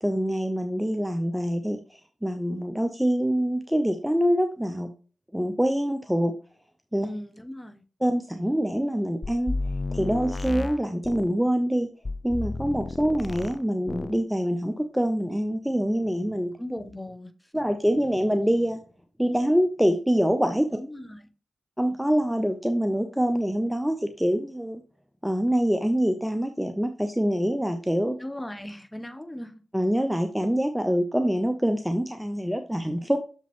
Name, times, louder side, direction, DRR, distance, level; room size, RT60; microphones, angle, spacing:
voice 1, 0.0-4.9 5.3-6.3 6.9-7.1 8.0-9.6 9.9-11.9 12.2-16.6 17.5-18.8 19.2-20.7 21.8-24.8 25.2-28.2 29.7-33.2, equal, 5° right, 0.7 m, -25 dB
voice 2, 7.0-7.8 16.6-17.3 20.7-21.2 28.2-29.6, left 1 dB, 15° left, 1.1 m, -37 dB
sound 1, 9.2-11.4 12.1-13.6 13.9-14.2, left 3 dB, 40° left, 0.5 m, -32 dB
6.8 x 5.2 x 3.6 m
cardioid pair, 60°, 0 cm